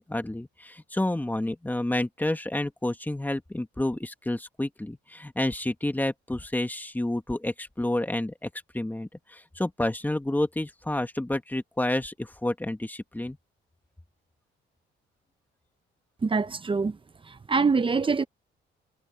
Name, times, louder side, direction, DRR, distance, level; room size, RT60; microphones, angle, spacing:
voice 1, 0.0-8.5 8.7-13.4, left 1 dB, 10° left, 2.1 m, -29 dB
voice 2, 16.2-17.0 17.3-18.3, right 4 dB, 25° right, 0.9 m, -24 dB
cardioid pair, 90°, 20 cm